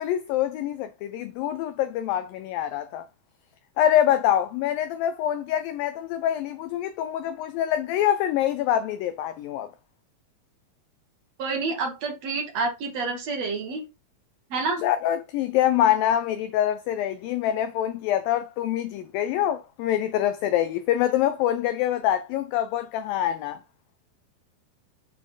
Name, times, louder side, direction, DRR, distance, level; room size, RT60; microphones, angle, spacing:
voice 1, 0.0-3.0 3.8-9.7 14.8-23.6, left 11 dB, 90° left, 2.0 m, -25 dB
voice 2, 11.4-13.8 14.5-14.8, right 4 dB, 55° right, 1.9 m, -28 dB
7.6 x 3.8 x 3.8 m
omnidirectional pair, 4.7 m